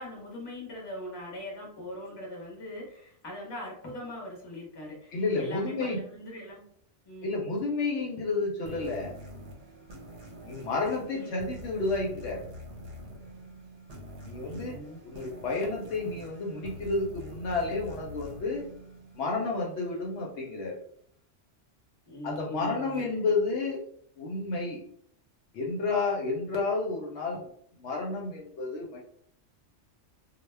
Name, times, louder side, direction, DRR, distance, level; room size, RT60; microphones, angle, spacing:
voice 1, 0.0-6.6 7.0-7.4 11.1-11.5 14.4-15.0 22.1-23.0, left 1 dB, 25° left, -2 dB, 0.7 m, -41 dB
voice 2, 5.1-6.0 7.2-9.1 10.4-12.4 14.2-14.8 15.0-18.7 19.2-20.8 22.2-23.9 24.2-24.8 25.5-27.5 27.8-29.0, left 3 dB, 75° left, 0 dB, 0.9 m, -31 dB
sound 1, 8.7-19.8, equal, 75° right, 1.1 m, -46 dB
2.2 x 2.2 x 3.2 m, 0.64 s
omnidirectional pair, 1.2 m